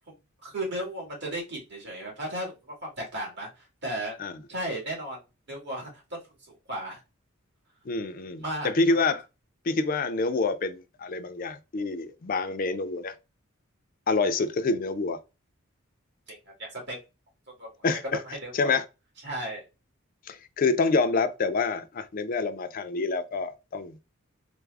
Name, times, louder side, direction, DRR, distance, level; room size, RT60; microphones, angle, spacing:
voice 1, 0.4-2.5 2.8-4.2 4.5-5.2 5.5-6.2 6.5-7.0 8.4-8.7 16.3-17.0 17.6-18.0 18.3-18.7 19.2-19.6, right 1 dB, 55° right, 1.9 m, -35 dB
voice 2, 7.9-9.2 9.7-13.1 14.1-15.2 17.8-18.2 18.5-18.8 20.3-24.1, left 3 dB, 45° left, 0.4 m, -27 dB
3.4 x 2.0 x 3.3 m
head